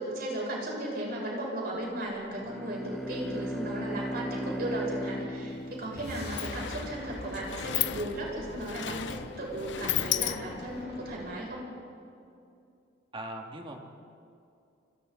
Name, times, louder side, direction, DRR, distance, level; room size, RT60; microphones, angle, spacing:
voice 1, 0.0-11.7, right 1 dB, 55° right, -3 dB, 7.8 m, -36 dB
Bowed string instrument, 2.3-6.9, equal, ahead, 1.6 m, -37 dB
Sliding door, 5.5-5.6 5.9-10.8, left 12 dB, 75° left, 0.6 m, -34 dB
sound 1, 5.9-11.5, equal, 60° left, 6.4 m, -43 dB
voice 2, 13.1-13.8, right 1 dB, 30° right, 1 dB, 2.7 m, -40 dB
29.5 x 25.5 x 4.3 m, 2.5 s
head